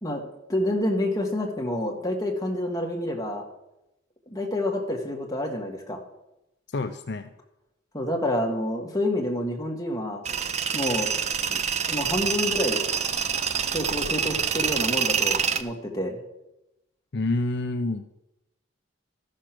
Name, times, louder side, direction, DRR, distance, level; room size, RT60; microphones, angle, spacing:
voice 1, 0.5-3.4 4.3-6.0 7.9-10.2 10.7-11.1 11.5-11.6 11.9-12.8 13.7-16.2, left 1 dB, 20° left, 0 dB, 1.7 m, -28 dB
voice 2, 6.7-7.3 17.1-18.0, left 2 dB, 55° left, 7 dB, 0.6 m, -27 dB
Tools, 10.3-15.6, right 7 dB, 35° right, 0.5 m, -26 dB
13.5 x 6.5 x 6.0 m, 0.90 s
head